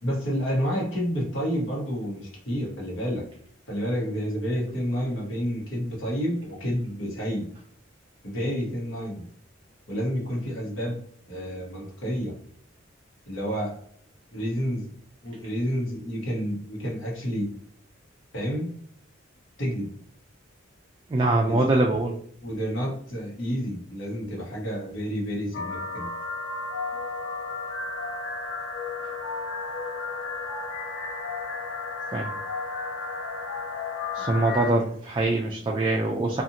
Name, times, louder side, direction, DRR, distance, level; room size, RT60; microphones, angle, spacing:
voice 1, 0.0-3.2 3.7-7.5 8.2-9.2 9.9-11.0 11.3-12.3 13.3-13.8 14.3-14.9 15.2-17.5 18.3-18.7 19.6-19.9 21.4-21.7 22.4-26.1, equal, 80° left, -2 dB, 1.1 m, -29 dB
voice 2, 21.1-22.2 32.1-32.3 34.1-36.4, right 2 dB, 25° right, 0 dB, 0.3 m, -23 dB
sound 1, 25.5-34.7, left 3 dB, 65° left, 0.5 m, -33 dB
2.6 x 2.4 x 2.8 m, 0.63 s
head